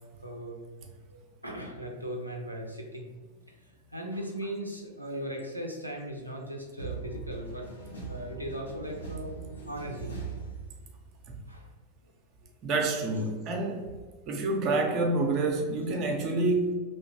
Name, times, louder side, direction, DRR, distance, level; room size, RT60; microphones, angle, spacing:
voice 1, 0.2-0.6 1.1-3.1 3.6-7.7 8.1-9.4 9.6-10.1 11.5-11.7, right 1 dB, 90° right, 0 dB, 0.4 m, -38 dB
sound 1, 6.8-11.2, right 4 dB, 75° left, 0.8 m, -40 dB
voice 2, 12.6-13.9 14.3-16.7, right 2 dB, 35° right, 2 dB, 0.6 m, -27 dB
3.1 x 2.9 x 2.7 m, 1.3 s
figure-of-eight pair, 90°, 0 cm